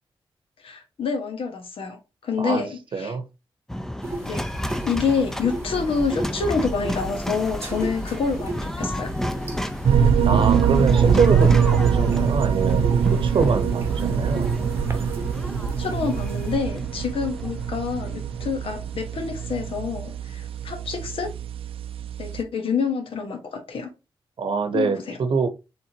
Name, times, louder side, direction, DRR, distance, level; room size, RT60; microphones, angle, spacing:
voice 1, 0.6-3.1 4.2-4.4 4.8-9.1 15.7-21.3 22.2-23.9 24.7-25.2, left 5 dB, 80° left, 1.2 m, -27 dB
voice 2, 2.9-3.2 10.3-14.5 24.4-25.5, right 4 dB, 65° right, 0.8 m, -25 dB
sound 1, 3.7-19.9, left 1 dB, 5° left, 0.4 m, -33 dB
sound 2, 4.0-16.6, right 1 dB, 25° right, 1.0 m, -34 dB
sound 3, 9.8-22.4, right 7 dB, 85° right, 0.4 m, -23 dB
4.4 x 3.6 x 2.8 m
wide cardioid pair, 100°, 9 cm